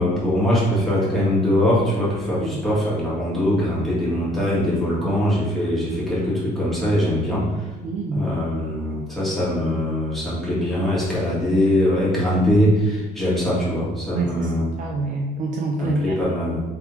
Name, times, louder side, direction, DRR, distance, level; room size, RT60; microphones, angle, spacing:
voice 1, 0.0-7.7 8.1-14.7 15.8-16.6, left 1 dB, ahead, -9 dB, 1.4 m, -22 dB
voice 2, 7.8-8.3 14.1-14.5 14.8-16.3, right 2 dB, 50° right, 0 dB, 0.4 m, -26 dB
3.4 x 3.0 x 2.3 m, 1.1 s
cardioid pair, 110°, 17 cm